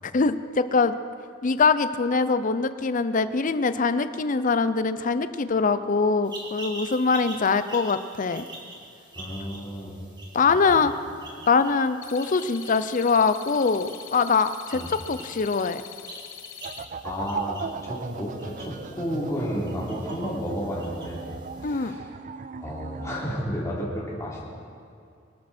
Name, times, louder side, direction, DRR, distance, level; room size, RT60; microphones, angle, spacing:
voice 1, 0.1-1.0 1.4-8.5 10.3-10.9 11.5-15.8 21.6-21.9, left 4 dB, 40° left, 12 dB, 0.6 m, -23 dB
sound 1, 6.2-21.9, right 2 dB, 25° right, 2.6 m, -46 dB
voice 2, 9.2-10.0 10.5-10.8 11.1-11.2 14.7-14.9 17.0-21.3 21.6-22.1 22.6-24.4, equal, 15° left, -6 dB, 3.4 m, -32 dB
sound 2, 12.0-16.8, left 11 dB, 75° left, 0.8 m, -43 dB
sound 3, 16.6-23.3, right 5 dB, 40° right, 0.5 m, -37 dB
24.5 x 12.5 x 4.4 m, 2.3 s
head